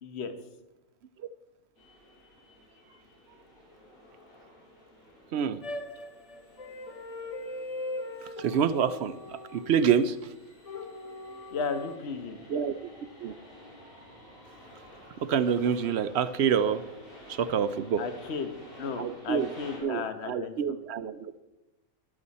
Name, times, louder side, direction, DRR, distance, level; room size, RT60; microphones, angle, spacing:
voice 1, 0.0-0.3 11.5-12.4 18.0-18.5 18.8-20.5, left 5 dB, 55° left, 8 dB, 1.3 m, -34 dB
sound 1, 1.8-19.8, left 1 dB, 90° left, 6.5 m, -52 dB
sound 2, 5.6-10.0 10.6-12.0, left 2 dB, 35° left, 0.6 m, -40 dB
voice 2, 8.4-10.2 12.5-12.7 13.2-13.3 15.2-16.8 17.3-18.0 19.0-19.5 19.8-21.3, right 7 dB, 60° right, 13 dB, 0.8 m, -27 dB
14.0 x 11.5 x 4.2 m, 0.97 s
omnidirectional pair, 1.4 m